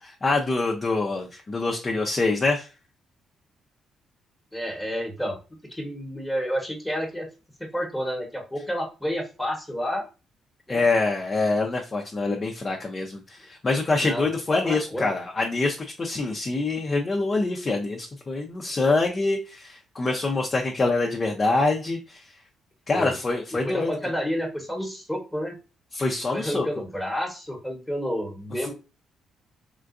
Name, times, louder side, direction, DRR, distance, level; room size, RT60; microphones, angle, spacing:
voice 1, 0.2-2.7 10.7-22.3 22.9-23.9 25.9-26.7, left 3 dB, 30° left, 0 dB, 0.6 m, -25 dB
voice 2, 4.5-5.4 5.7-7.3 7.7-10.1 10.7-10.8 14.0-14.2 14.6-15.1 22.9-23.2 23.5-25.5 26.3-28.7, equal, 5° left, 1 dB, 1.1 m, -30 dB
3.7 x 2.3 x 2.4 m, 0.31 s
cardioid pair, 90°, 0 cm